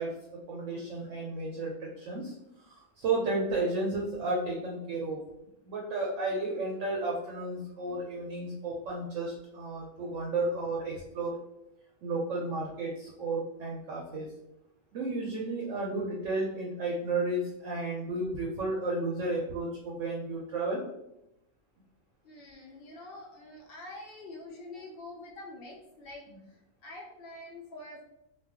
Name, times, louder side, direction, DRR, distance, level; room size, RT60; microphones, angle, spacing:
voice 1, 0.0-5.2 5.6-11.3 12.0-14.3 14.9-20.8, right 2 dB, 65° right, -2 dB, 0.8 m, -33 dB
voice 2, 22.2-26.2 26.5-28.0, left 2 dB, 90° left, -1 dB, 0.5 m, -46 dB
2.4 x 2.3 x 3.4 m, 0.86 s
omnidirectional pair, 1.6 m